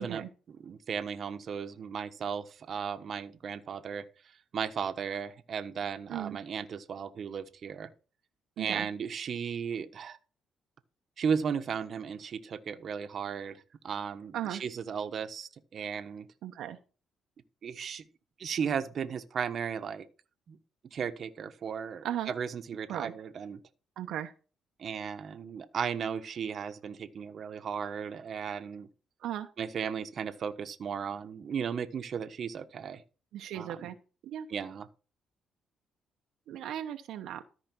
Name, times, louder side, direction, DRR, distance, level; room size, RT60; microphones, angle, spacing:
voice 1, 0.0-4.0 4.5-7.9 8.6-10.2 11.2-16.3 17.6-18.1 18.4-20.1 20.5-20.6 20.9-23.6 24.8-28.9 29.6-33.0 33.5-33.9 34.5-34.9, right 7 dB, 55° right, 10 dB, 1.1 m, -35 dB
voice 2, 8.6-8.9 14.3-14.6 16.4-16.8 22.0-22.3 22.9-23.1 24.0-24.3 29.2-29.5 33.3-34.0 34.2-34.5 36.5-37.4, right 11 dB, 80° right, 6 dB, 1.0 m, -36 dB
14.0 x 4.9 x 6.2 m, 0.35 s
cardioid pair, 90°, 0 cm